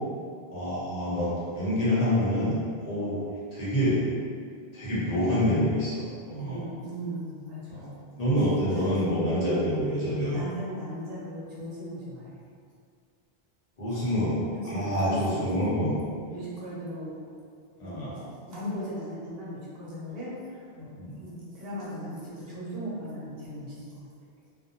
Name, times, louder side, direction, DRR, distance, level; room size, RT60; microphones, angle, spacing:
voice 1, 0.5-2.5 2.8-3.2 3.5-4.0 4.7-6.0 6.3-6.6 7.7-7.9 8.2-10.5 13.8-14.4 14.6-15.9 17.8-18.2 21.0-21.1, equal, 45° left, -10 dB, 0.9 m, -27 dB
voice 2, 6.4-7.9 8.7-8.9 10.3-12.4 13.9-14.0 14.5-15.6 16.3-17.2 17.8-18.2 18.5-24.1, equal, 75° right, -7 dB, 0.9 m, -38 dB
2.4 x 2.0 x 2.7 m, 2.2 s
omnidirectional pair, 1.0 m